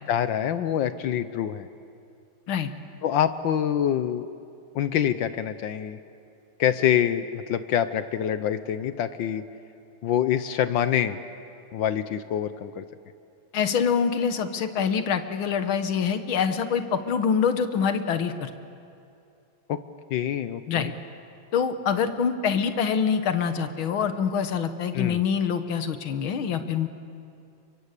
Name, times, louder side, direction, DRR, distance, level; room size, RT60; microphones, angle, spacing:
voice 1, 0.1-1.7 3.0-4.3 4.7-6.0 6.6-9.4 10.0-11.2 11.7-12.8 19.7-19.8 20.1-20.9 24.9-25.2, left 9 dB, 75° left, 12 dB, 1.5 m, -25 dB
voice 2, 13.5-18.5 20.7-20.9 21.5-26.9, left 6 dB, 90° left, 9 dB, 2.1 m, -25 dB
30.0 x 23.0 x 8.3 m, 2.5 s
omnidirectional pair, 2.2 m